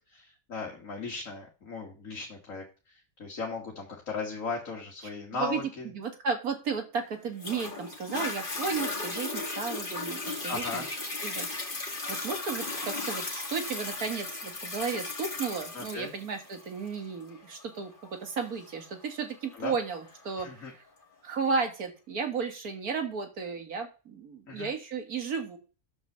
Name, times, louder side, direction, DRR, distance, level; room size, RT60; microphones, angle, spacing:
voice 1, 0.1-5.9 10.5-10.9 15.7-16.1 19.6-19.7 20.4-20.7 24.5-24.7, left 4 dB, 65° left, -1 dB, 2.0 m, -37 dB
voice 2, 5.3-5.6 5.9-10.9 11.2-11.7 12.1-20.8 21.2-25.6, right 5 dB, 85° right, 4 dB, 2.1 m, -34 dB
Toilet flush, 7.4-20.4 21.0-21.1, left 3 dB, 35° left, 2.0 m, -36 dB
7.9 x 5.5 x 6.6 m, 0.34 s
omnidirectional pair, 1.5 m